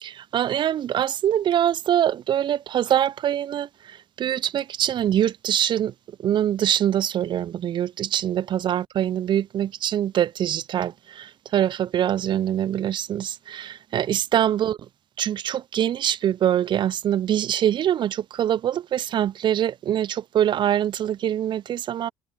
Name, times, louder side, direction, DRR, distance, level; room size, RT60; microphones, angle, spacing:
voice 1, 0.0-5.9 6.2-14.8 15.2-22.1, right 10 dB, 45° right, 0.6 m, -24 dB
figure-of-eight pair, 55°, 11 cm